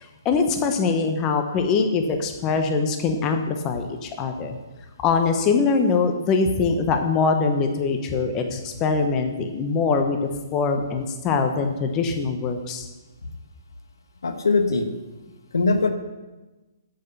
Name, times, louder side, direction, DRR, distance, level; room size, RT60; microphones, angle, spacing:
voice 1, 0.0-4.5 5.0-10.2 10.5-12.9, left 4 dB, 25° left, 5 dB, 1.0 m, -23 dB
voice 2, 14.2-14.9 15.5-15.9, left 3 dB, 75° left, 7 dB, 1.3 m, -21 dB
8.5 x 8.1 x 6.8 m, 1.2 s
hypercardioid pair, 135°, 2 cm